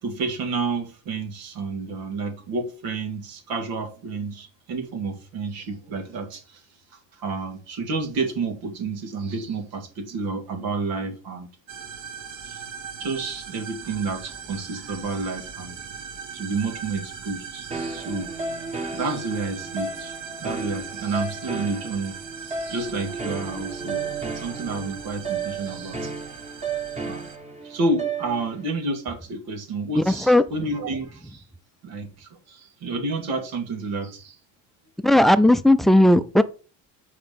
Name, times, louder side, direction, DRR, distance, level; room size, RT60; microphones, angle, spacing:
voice 1, 0.0-6.6 7.1-11.5 12.3-12.7 13.0-15.8 16.3-18.3 18.9-20.1 20.4-26.1 27.0-27.2 27.6-31.4 31.8-34.4, right 3 dB, 90° right, 2.2 m, -30 dB
sound 1, 11.7-27.4, right 7 dB, 50° right, 1.5 m, -39 dB
sound 2, 17.7-28.7, right 4 dB, 20° right, 1.6 m, -33 dB
voice 2, 30.0-30.4 35.0-36.4, left 1 dB, ahead, 0.3 m, -16 dB
7.5 x 4.8 x 5.1 m
cardioid pair, 135°, 35 cm